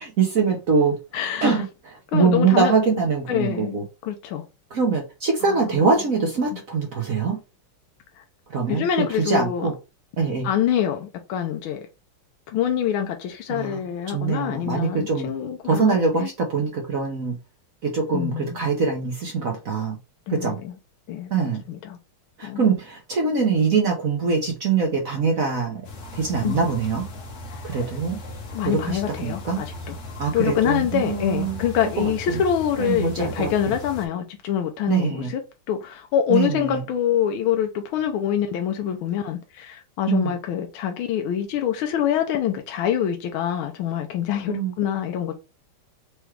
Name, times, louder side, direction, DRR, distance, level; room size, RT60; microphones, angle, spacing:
voice 1, 0.0-1.0 1.4-3.8 4.7-7.4 8.5-8.9 9.2-9.7 10.2-10.5 13.5-13.8 14.1-15.3 15.6-17.4 17.8-20.0 20.3-20.6 21.3-21.6 22.4-25.8 26.1-27.1 27.6-28.2 28.6-29.6 30.2-31.6 31.9-32.4 32.8-33.8 34.9-35.3 36.3-36.8 40.1-40.3 44.5-44.7, right 5 dB, 55° right, 1.0 m, -23 dB
voice 2, 1.1-1.6 2.1-2.7 3.3-3.8 4.0-4.4 5.5-5.6 6.5-6.6 8.7-9.7 10.4-11.8 12.5-16.3 18.1-18.6 20.3-20.8 21.1-21.3 21.7-22.0 22.4-22.7 26.4-26.6 28.5-30.0 30.3-35.4 35.7-45.4, left 9 dB, 75° left, 1.4 m, -25 dB
sound 1, 25.8-34.1, left 2 dB, 50° left, 0.9 m, -37 dB
4.8 x 3.0 x 3.2 m
omnidirectional pair, 2.4 m